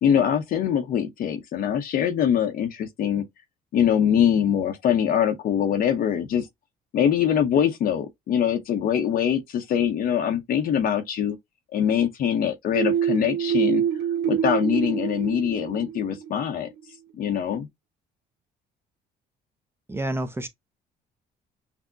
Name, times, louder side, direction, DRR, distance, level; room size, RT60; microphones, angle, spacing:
voice 1, 0.0-3.2 3.7-6.5 6.9-11.4 11.7-13.8 14.3-16.7 17.2-17.7, left 9 dB, 60° left, 0.7 m, -23 dB
sound 1, 12.7-16.4, right 9 dB, 80° right, 0.5 m, -26 dB
voice 2, 19.9-20.5, right 1 dB, 15° right, 0.6 m, -28 dB
5.9 x 2.0 x 2.5 m
cardioid pair, 110°, 17 cm